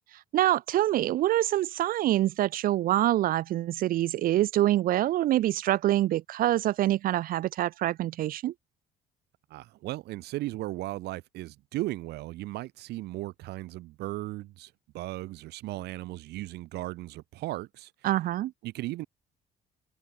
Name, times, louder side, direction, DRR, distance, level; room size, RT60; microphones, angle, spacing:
voice 1, 0.3-8.5 18.0-18.5, right 14 dB, 60° right, 0.5 m, -25 dB
voice 2, 9.5-18.1 18.6-19.1, right 17 dB, 80° right, 1.4 m, -36 dB
cardioid pair, 110°, 17 cm